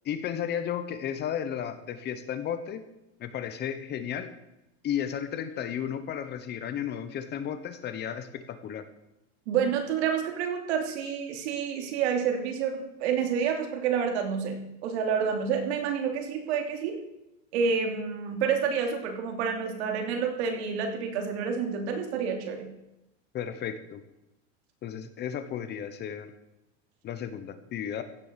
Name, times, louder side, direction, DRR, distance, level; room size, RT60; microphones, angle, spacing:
voice 1, 0.0-2.8 3.2-4.3 4.8-8.8 23.3-24.0 24.8-26.3 27.0-28.0, left 9 dB, 30° left, 10 dB, 1.1 m, -33 dB
voice 2, 9.5-17.0 17.5-22.7, right 6 dB, 75° right, 4 dB, 2.9 m, -29 dB
15.5 x 7.0 x 6.9 m, 0.90 s
supercardioid pair, 145°, 33 cm